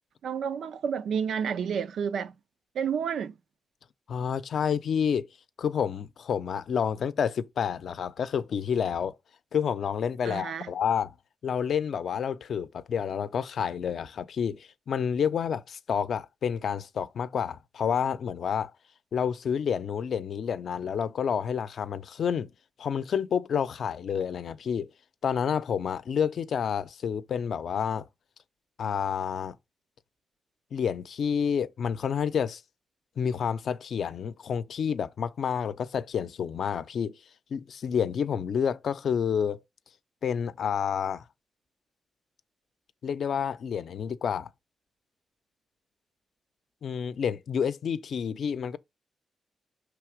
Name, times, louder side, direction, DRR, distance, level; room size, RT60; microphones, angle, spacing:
voice 1, 0.2-2.3 2.7-3.3 10.3-10.7, right 7 dB, 90° right, 0.4 m, -30 dB
voice 2, 4.1-5.3 5.6-9.1 9.5-11.1 11.4-18.7 19.1-22.5 22.8-24.9 25.2-28.1 28.8-29.6 30.7-32.6 33.2-37.2 37.5-39.6 40.2-41.2 43.0-44.5 46.8-48.8, left 7 dB, 75° left, 0.5 m, -29 dB
5.8 x 3.4 x 4.8 m
cardioid pair, 85°, 0 cm